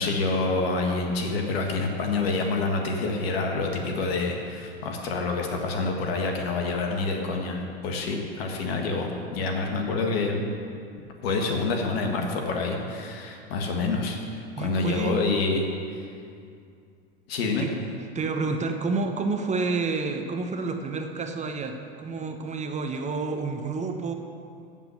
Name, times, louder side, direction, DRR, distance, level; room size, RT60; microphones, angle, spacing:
voice 1, 0.0-10.4 11.2-14.2 14.6-15.7 17.3-17.6, left 3 dB, 75° left, 2 dB, 1.7 m, -27 dB
voice 2, 14.6-15.2 17.6-17.7 18.1-24.1, right 4 dB, 25° right, 5 dB, 0.9 m, -29 dB
8.0 x 7.3 x 8.3 m, 2.4 s
hypercardioid pair, 100°, 31 cm